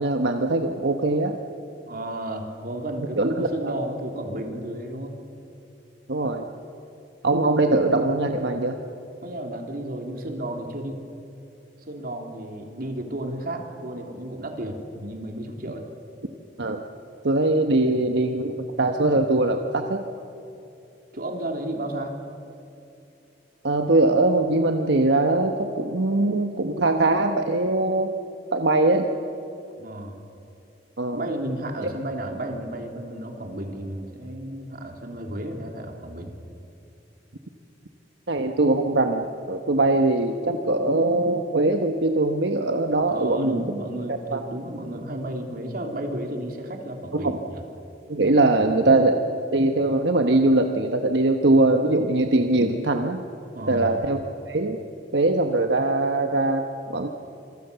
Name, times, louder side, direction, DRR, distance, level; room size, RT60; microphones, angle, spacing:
voice 1, 0.0-1.4 3.2-3.5 6.1-6.4 7.2-8.8 16.6-16.8 17.2-20.0 23.6-28.1 28.5-29.1 31.0-31.3 31.8-31.9 38.3-43.6 44.1-44.4 47.1-47.4 48.1-49.3 49.5-53.2 53.7-54.2 54.5-54.8 55.1-56.6 56.9-57.1, right 2 dB, 85° right, 4 dB, 1.3 m, -21 dB
voice 2, 1.9-5.2 9.2-11.0 11.9-15.8 21.1-22.2 29.8-30.1 31.1-36.3 43.1-47.6 53.5-54.0, right 1 dB, 55° right, 3 dB, 3.4 m, -32 dB
26.5 x 24.0 x 6.9 m, 2.7 s
head